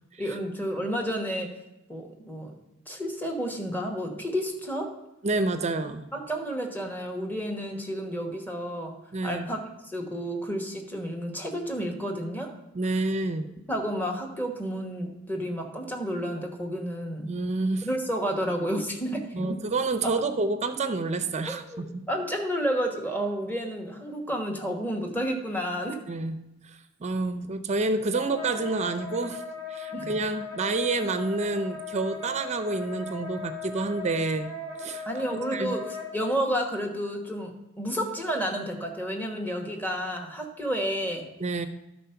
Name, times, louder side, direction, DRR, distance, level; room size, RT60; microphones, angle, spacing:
voice 1, 0.2-1.5 1.9-2.5 2.9-4.9 6.1-8.9 9.2-12.5 13.7-17.4 17.8-19.6 21.5-26.0 29.9-30.1 35.1-35.8 36.1-37.5 37.8-41.3, equal, 10° left, 2 dB, 1.2 m, -31 dB
voice 2, 5.2-6.0 9.1-9.5 12.7-13.5 17.3-17.9 19.3-22.0 26.1-26.4 26.6-29.4 29.7-34.5 34.8-35.1 35.3-35.8 41.4-41.7, right 3 dB, 30° right, 10 dB, 0.5 m, -28 dB
Wind instrument woodwind instrument, 28.1-36.3, left 4 dB, 45° left, 3.4 m, -38 dB
12.0 x 4.3 x 5.7 m, 0.91 s
head